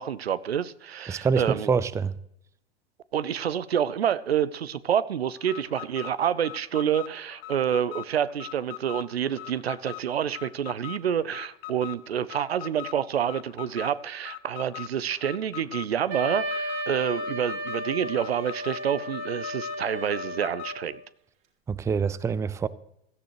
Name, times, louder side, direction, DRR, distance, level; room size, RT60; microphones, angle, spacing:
voice 1, 0.0-1.7 3.1-21.0, right 9 dB, 75° right, 0.7 m, -28 dB
voice 2, 1.1-2.1 21.7-22.7, right 5 dB, 10° right, 0.5 m, -25 dB
Alarm, 5.4-20.8, left 17 dB, 40° left, 0.9 m, -42 dB
Wind instrument woodwind instrument, 16.1-21.0, equal, 40° right, 3.2 m, -34 dB
16.5 x 13.5 x 3.1 m
figure-of-eight pair, 85°, 31 cm